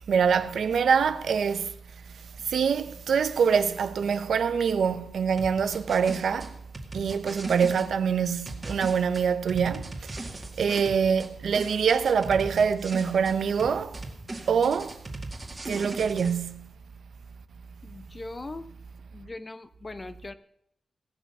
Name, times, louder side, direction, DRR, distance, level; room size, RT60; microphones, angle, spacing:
voice 1, 0.1-1.7 2.4-6.6 6.9-14.0 14.5-15.0 15.6-16.7, right 6 dB, 80° right, 0.7 m, -25 dB
sound 1, 5.4-7.9 8.5-11.3 11.5-13.3 13.6-16.3, right 2 dB, 20° right, 2.0 m, -38 dB
voice 2, 17.8-18.7 19.1-20.3, left 2 dB, 25° left, 0.6 m, -40 dB
17.0 x 6.2 x 8.3 m
wide cardioid pair, 175°, 0 cm